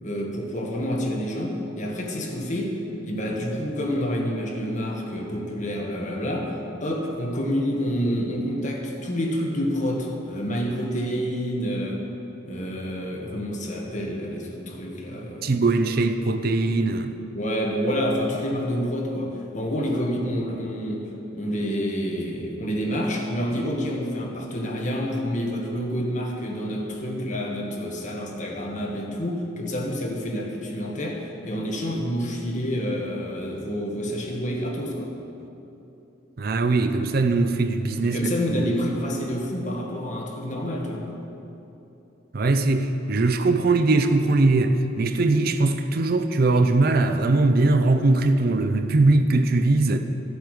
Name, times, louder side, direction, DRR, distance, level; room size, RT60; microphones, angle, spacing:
voice 1, 0.0-2.8 3.0-12.0 12.4-15.6 17.3-35.1 38.0-41.1, equal, 40° left, -1 dB, 1.5 m, -28 dB
voice 2, 15.4-17.1 36.4-38.7 42.3-50.0, right 2 dB, 55° right, 8 dB, 0.5 m, -21 dB
13.5 x 8.0 x 4.9 m, 2.9 s
head